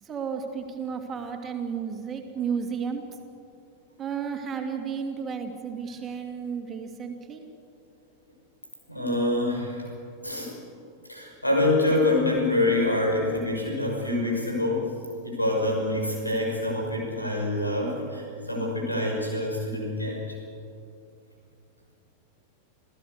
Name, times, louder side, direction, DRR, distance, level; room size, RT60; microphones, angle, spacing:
voice 1, 0.0-3.0 4.0-7.4, right 6 dB, 25° right, 4 dB, 2.7 m, -33 dB
voice 2, 8.9-9.9 10.2-10.5 11.1-14.9 15.2-20.2, left 2 dB, 85° left, -1 dB, 6.1 m, -26 dB
28.5 x 15.5 x 8.2 m, 2.5 s
figure-of-eight pair, 90°, 0 cm